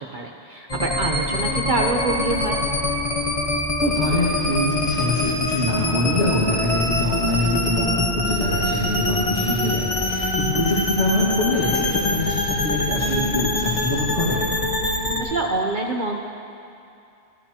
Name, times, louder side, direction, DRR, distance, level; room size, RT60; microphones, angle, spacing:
voice 1, 0.1-2.6 14.9-16.2, right 2 dB, 50° right, 1 dB, 0.8 m, -26 dB
sound 1, 0.7-15.2, left 1 dB, 30° left, 1.4 m, -24 dB
voice 2, 3.8-14.4, left 2 dB, 80° left, -8 dB, 2.3 m, -24 dB
20.5 x 14.0 x 2.9 m, 2.5 s
omnidirectional pair, 1.2 m